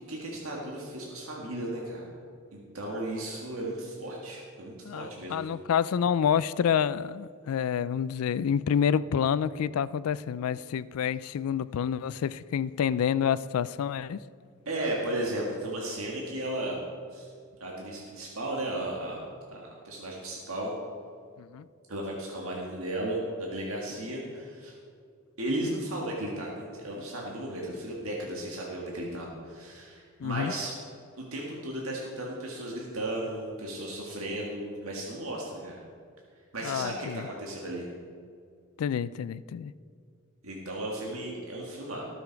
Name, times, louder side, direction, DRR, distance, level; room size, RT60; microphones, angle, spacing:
voice 1, 0.1-2.1 2.5-5.6 14.7-16.8 17.1-17.3 17.6-19.2 19.5-20.7 21.9-24.8 25.4-30.7 31.2-35.8 36.5-37.9 40.4-42.0, right 1 dB, 75° right, -2 dB, 1.8 m, -35 dB
voice 2, 4.9-14.2 21.4-21.7 30.2-30.5 36.6-37.2 38.8-39.7, left 8 dB, 80° left, 17 dB, 0.3 m, -28 dB
18.5 x 7.0 x 4.6 m, 2.3 s
head